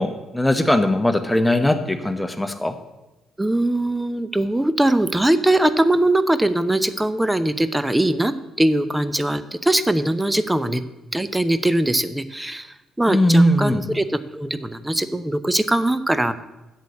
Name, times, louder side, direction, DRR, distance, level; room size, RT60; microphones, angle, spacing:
voice 1, 0.0-2.7 13.1-13.8, left 1 dB, 10° left, 8 dB, 1.2 m, -19 dB
voice 2, 3.4-10.8 11.1-12.7 13.0-16.3, right 1 dB, 10° right, 13 dB, 0.8 m, -21 dB
8.1 x 6.6 x 8.3 m, 1.0 s
figure-of-eight pair, 45°, 0 cm